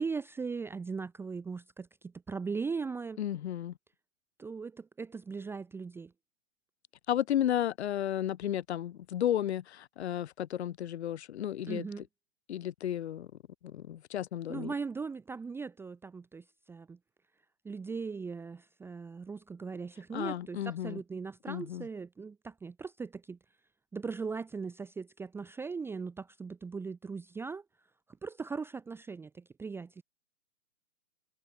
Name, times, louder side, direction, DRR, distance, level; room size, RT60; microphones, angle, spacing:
voice 1, 0.0-3.2 4.4-6.1 11.7-12.0 14.5-17.0 17.6-23.4 23.9-27.6 28.2-30.0, right 5 dB, 5° right, 1.0 m, -39 dB
voice 2, 3.2-3.7 7.1-11.9 12.5-13.3 13.6-14.7 20.1-21.0 21.5-21.8, left 11 dB, 50° left, 6.1 m, -33 dB
figure-of-eight pair, 125°, 41 cm